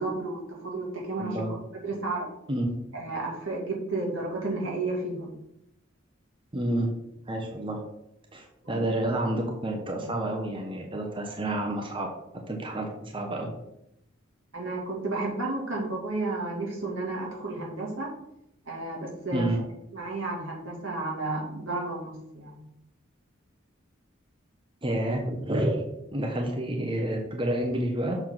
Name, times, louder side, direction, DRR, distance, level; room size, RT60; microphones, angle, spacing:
voice 1, 0.0-1.4 1.7-2.3 2.9-5.3 8.7-8.8 14.5-18.1 18.7-19.5 19.9-22.6, right 2 dB, 80° right, -2 dB, 2.5 m, -32 dB
voice 2, 1.2-1.5 2.5-2.7 6.5-6.9 7.3-7.8 8.3-12.1 12.5-13.5 19.3-19.6 24.8-25.8 26.1-28.2, right 1 dB, 25° right, 2 dB, 0.8 m, -29 dB
6.9 x 3.9 x 6.0 m, 0.83 s
head